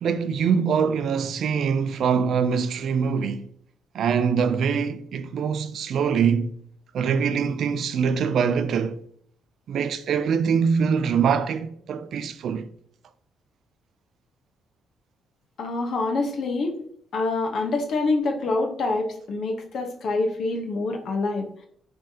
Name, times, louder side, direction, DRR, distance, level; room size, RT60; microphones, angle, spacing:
voice 1, 0.0-3.5 3.9-6.5 6.9-9.0 9.7-12.7, right 6 dB, 65° right, 0.4 m, -23 dB
voice 2, 15.6-16.7 17.1-21.7, left 3 dB, 65° left, 0.9 m, -26 dB
5.3 x 3.3 x 2.8 m
cardioid pair, 90°, 0 cm